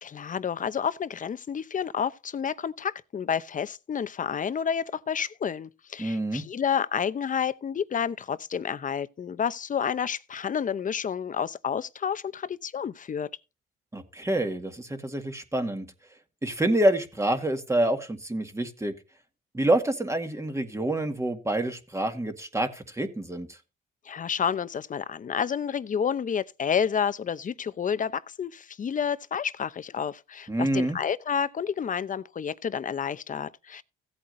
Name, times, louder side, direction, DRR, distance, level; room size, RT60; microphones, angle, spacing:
voice 1, 0.0-13.3 24.1-33.8, left 7 dB, 40° left, 0.8 m, -30 dB
voice 2, 6.0-6.4 13.9-15.9 16.4-18.9 19.5-23.5 30.5-31.0, right 1 dB, 15° right, 1.9 m, -27 dB
16.0 x 8.6 x 2.7 m
cardioid pair, 90°, 20 cm